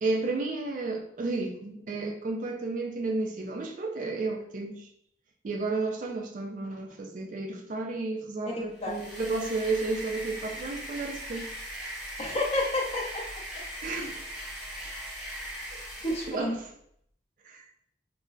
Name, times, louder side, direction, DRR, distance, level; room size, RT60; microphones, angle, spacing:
voice 1, 0.0-4.9 5.4-11.5 13.8-14.3 15.7-15.9 16.3-16.7 17.4-17.7, right 3 dB, 45° right, 0.4 m, -32 dB
voice 2, 8.6-9.0 12.2-13.6 16.0-16.6, left 1 dB, 35° left, 0.7 m, -31 dB
sound 1, 8.7-16.5, equal, ahead, 0.7 m, -40 dB
3.7 x 2.0 x 2.3 m
head